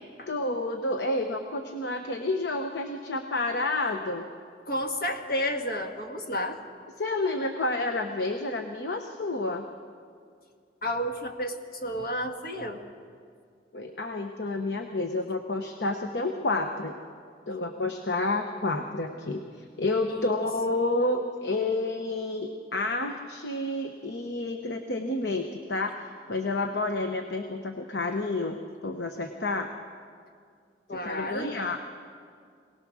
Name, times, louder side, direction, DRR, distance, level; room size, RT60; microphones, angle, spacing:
voice 1, 0.3-4.3 7.0-9.7 13.7-17.0 17.5-19.4 19.8-25.9 26.3-29.7 30.9-31.8, left 2 dB, 75° left, 5 dB, 1.0 m, -29 dB
voice 2, 4.7-6.6 10.8-11.6 11.8-12.8 20.1-20.3 30.9-31.6, equal, 55° left, 4 dB, 1.6 m, -31 dB
23.5 x 18.5 x 6.3 m, 2.2 s
head